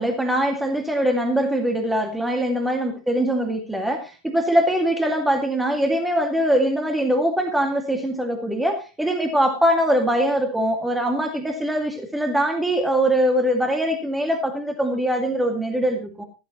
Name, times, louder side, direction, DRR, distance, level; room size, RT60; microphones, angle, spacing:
voice 1, 0.0-16.2, equal, 5° right, 4 dB, 2.2 m, -22 dB
15.0 x 13.5 x 3.0 m, 0.31 s
figure-of-eight pair, 90°, 0 cm